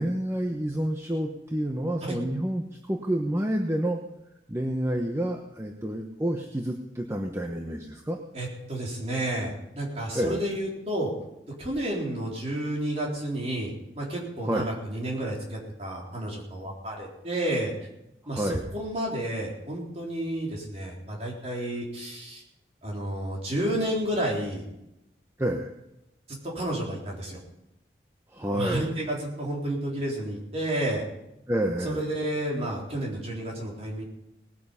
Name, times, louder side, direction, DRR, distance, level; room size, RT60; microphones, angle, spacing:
voice 1, 0.0-4.0 4.5-8.2 10.1-10.4 14.5-14.7 18.3-18.6 25.4-25.7 28.3-28.9 31.5-32.0, right 1 dB, 15° right, 3 dB, 0.9 m, -29 dB
voice 2, 8.3-11.1 11.6-17.7 18.3-22.4 22.8-24.6 26.4-27.4 28.5-31.0 31.8-34.0, right 1 dB, 35° right, -2 dB, 3.9 m, -31 dB
19.0 x 9.3 x 5.6 m, 0.88 s
head